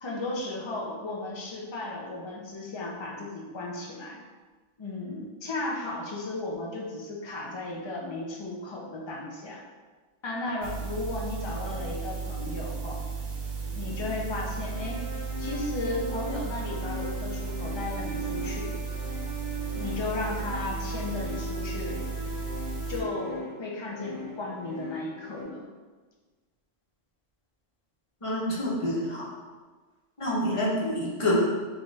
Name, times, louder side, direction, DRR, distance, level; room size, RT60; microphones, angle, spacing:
voice 1, 0.0-4.2 4.8-9.6 10.2-13.0 13.7-15.0 15.4-18.7 19.7-22.0 22.9-25.7 30.8-31.1, left 2 dB, 45° left, -3 dB, 0.3 m, -35 dB
sound 1, 10.6-23.0, right 5 dB, 60° right, 0.5 m, -35 dB
sound 2, 11.5-25.4, left 2 dB, 30° right, 1.7 m, -40 dB
voice 2, 28.2-29.2 30.2-31.4, left 1 dB, 30° left, -6 dB, 0.8 m, -27 dB
3.5 x 2.4 x 4.0 m, 1.4 s
omnidirectional pair, 1.3 m